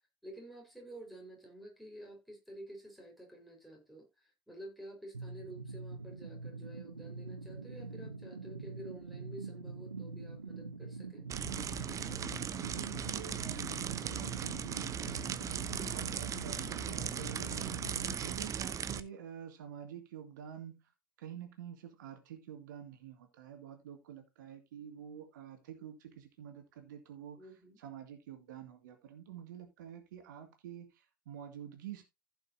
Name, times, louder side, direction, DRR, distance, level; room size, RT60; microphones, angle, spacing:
voice 1, 0.2-11.3 27.4-27.8, right 1 dB, ahead, 4.7 m, -50 dB
sound 1, 5.1-18.1, right 3 dB, 85° right, 0.7 m, -45 dB
sound 2, 11.3-19.0, right 8 dB, 30° right, 0.8 m, -38 dB
voice 2, 12.6-20.9 21.2-27.4 27.8-32.0, right 9 dB, 65° right, 2.1 m, -48 dB
15.5 x 5.9 x 2.7 m
figure-of-eight pair, 70°, 11 cm